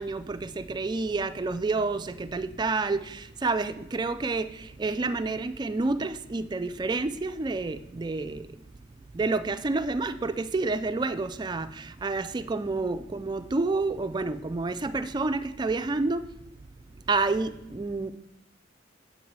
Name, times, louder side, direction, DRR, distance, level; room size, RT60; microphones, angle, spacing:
voice 1, 0.0-8.5 9.1-16.2 17.1-18.1, right 3 dB, 25° right, 12 dB, 0.3 m, -29 dB
7.9 x 7.3 x 4.6 m, 0.89 s
head